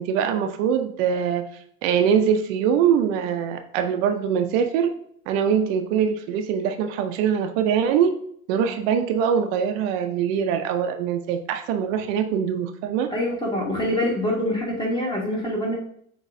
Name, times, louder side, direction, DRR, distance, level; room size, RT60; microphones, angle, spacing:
voice 1, 0.0-1.5 1.8-4.9 5.3-8.2 8.5-13.1, right 8 dB, 70° right, 7 dB, 0.7 m, -23 dB
voice 2, 13.1-15.7, left 1 dB, 10° left, -2 dB, 1.4 m, -25 dB
6.2 x 3.1 x 2.6 m, 0.66 s
supercardioid pair, 125°, 41 cm